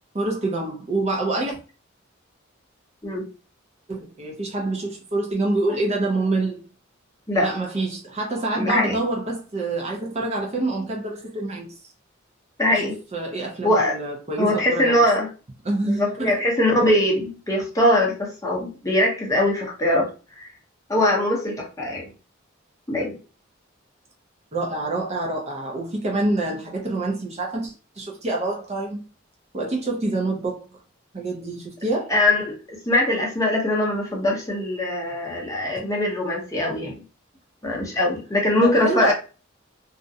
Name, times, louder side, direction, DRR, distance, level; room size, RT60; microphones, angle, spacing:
voice 1, 0.1-1.6 3.9-6.6 7.3-11.7 12.7-12.8 13.1-15.0 15.6-16.3 24.5-29.0 29.5-30.6 31.1-32.1 38.6-39.1, right 2 dB, 30° right, 0.5 m, -26 dB
voice 2, 8.6-9.0 12.6-12.9 13.6-13.9 14.4-15.3 15.8-20.1 20.4-20.5 20.9-22.1 22.9-23.1 32.1-36.9 37.6-39.1, left 1 dB, 15° left, 0.7 m, -22 dB
2.4 x 2.1 x 2.6 m
head